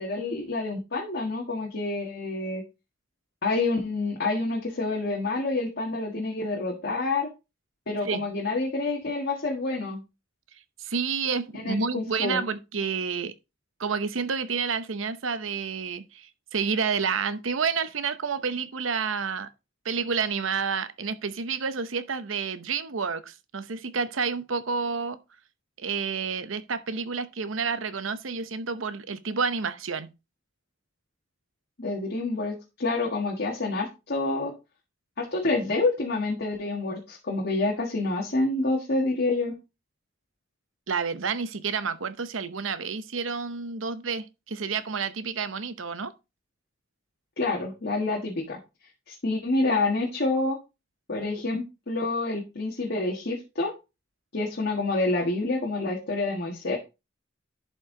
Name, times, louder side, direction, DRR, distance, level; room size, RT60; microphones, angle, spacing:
voice 1, 0.0-2.6 3.4-7.3 7.9-10.0 11.6-12.4 31.8-34.5 35.2-39.5 47.4-48.6 49.1-50.6 51.1-53.7 54.3-56.8, left 2 dB, 55° left, 1.6 m, -28 dB
voice 2, 10.8-13.3 13.8-19.5 19.8-25.2 25.8-30.1 40.9-46.1, right 5 dB, 75° right, 0.8 m, -29 dB
11.0 x 4.6 x 3.8 m
head